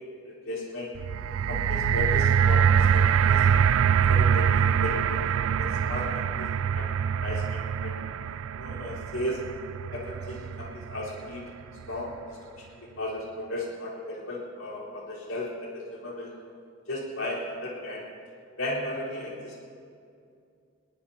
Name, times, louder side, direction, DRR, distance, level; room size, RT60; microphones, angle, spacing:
voice 1, 0.2-0.9 1.5-3.5 4.1-6.5 6.7-6.9 7.2-8.0 8.6-9.4 9.9-11.5 11.9-12.2 12.6-16.3 16.9-18.0 18.6-19.5, left 1 dB, 85° left, -6 dB, 4.3 m, -35 dB
sound 1, 1.0-11.2 11.9-12.0, right 7 dB, 75° right, 0.3 m, -24 dB
22.0 x 18.5 x 2.9 m, 2.4 s
head